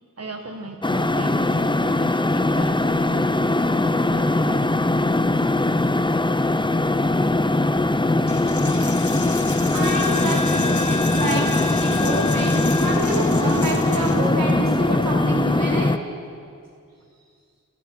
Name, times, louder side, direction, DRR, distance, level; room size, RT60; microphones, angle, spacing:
voice 1, 0.2-4.8, right 2 dB, 50° right, 4 dB, 1.4 m, -36 dB
sound 1, 0.8-16.0, left 2 dB, 15° left, 0.7 m, -21 dB
Coin (dropping), 8.3-14.3, left 3 dB, 60° left, 1.6 m, -31 dB
voice 2, 9.7-10.8 11.1-15.9, right 2 dB, 90° right, -4 dB, 4.8 m, -27 dB
29.5 x 14.5 x 6.2 m, 2.3 s
wide cardioid pair, 50°, 33 cm